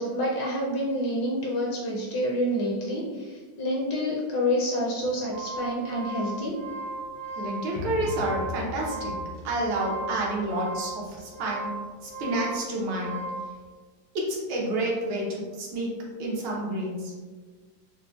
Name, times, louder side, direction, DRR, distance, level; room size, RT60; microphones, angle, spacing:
voice 1, 0.0-6.5, equal, 70° left, -3 dB, 1.1 m, -28 dB
sound 1, 5.0-13.5, right 3 dB, 45° left, 0.5 m, -37 dB
voice 2, 7.4-9.1 9.4-13.2 14.1-15.9 16.2-17.1, right 1 dB, 80° right, -3 dB, 1.6 m, -29 dB
sound 2, 7.7-11.4, left 3 dB, 55° right, 0.7 m, -39 dB
5.3 x 2.1 x 2.3 m, 1.4 s
omnidirectional pair, 2.3 m